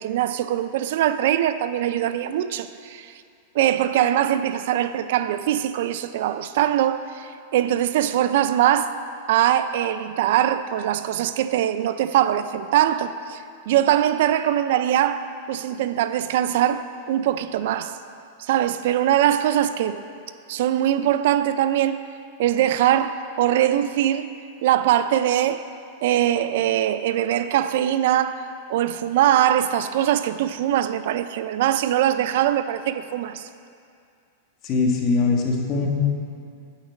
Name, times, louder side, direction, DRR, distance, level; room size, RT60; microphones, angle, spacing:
voice 1, 0.0-3.1 3.5-8.9 9.3-17.9 18.4-20.0 20.5-22.0 22.4-24.3 24.6-25.7 26.0-33.5, right 11 dB, 65° right, 0.3 m, -22 dB
voice 2, 34.6-35.9, left 4 dB, 35° left, 1.3 m, -21 dB
8.9 x 5.1 x 7.3 m
supercardioid pair, 150°, 0 cm